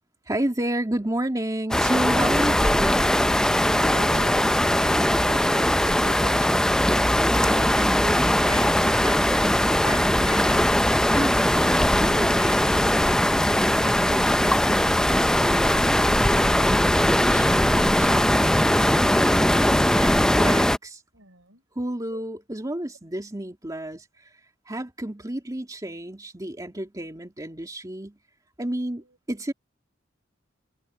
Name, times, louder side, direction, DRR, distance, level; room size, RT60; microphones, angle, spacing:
voice 1, 0.3-3.1 7.3-13.2 13.5-16.8 17.0-21.0 21.8-24.3 24.7-28.2 28.6-29.5, right 1 dB, 20° right, 2.4 m, -32 dB
sound 1, 1.7-20.8, left 1 dB, 5° left, 0.4 m, -20 dB
voice 2, 3.7-6.6 21.1-21.6 22.1-22.3, right 3 dB, 80° right, 5.2 m, -43 dB
head